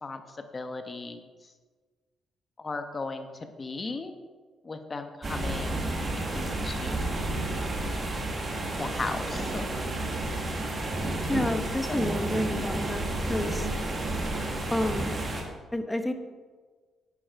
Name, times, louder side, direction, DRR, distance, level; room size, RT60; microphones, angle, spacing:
voice 1, 0.0-1.5 2.6-4.1 4.6-7.3 8.8-9.7 11.9-12.0, left 3 dB, 30° left, 7 dB, 1.2 m, -37 dB
sound 1, 5.2-15.4, right 2 dB, 35° right, 2.2 m, -31 dB
voice 2, 11.3-13.7 14.7-15.3 15.7-16.1, left 1 dB, 10° left, 7 dB, 1.1 m, -30 dB
11.0 x 8.7 x 4.7 m, 1.4 s
cardioid pair, 90°, 0 cm